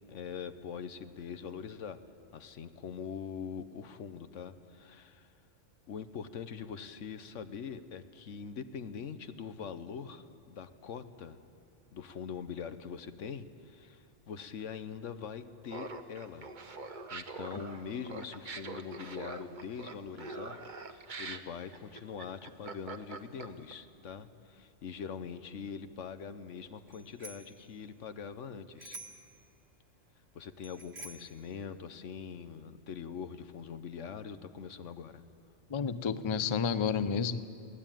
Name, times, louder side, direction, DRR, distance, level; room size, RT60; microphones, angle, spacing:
voice 1, 0.1-2.0 2.3-5.3 5.9-11.4 11.9-16.5 17.1-20.6 20.9-29.0 30.3-35.2, left 6 dB, 75° left, 11 dB, 1.2 m, -43 dB
Laughter, 15.7-23.7, right 3 dB, 45° right, 1.0 m, -43 dB
Bicycle bell, 26.9-27.6 28.8-29.3 30.6-31.4, right 2 dB, 60° right, 1.9 m, -48 dB
voice 2, 35.7-37.5, left 6 dB, 40° left, 13 dB, 0.4 m, -30 dB
22.0 x 16.0 x 9.1 m, 2.5 s
omnidirectional pair, 1.3 m